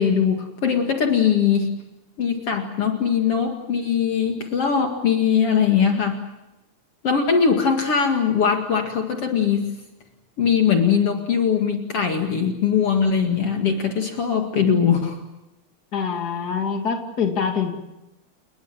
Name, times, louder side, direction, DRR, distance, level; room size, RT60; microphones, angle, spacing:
voice 1, 0.0-1.8 2.2-6.2 7.0-9.8 10.4-15.2, left 7 dB, 55° left, 4 dB, 2.8 m, -21 dB
voice 2, 15.9-17.7, left 6 dB, 35° left, 4 dB, 2.8 m, -25 dB
29.5 x 20.5 x 7.5 m, 0.97 s
omnidirectional pair, 3.3 m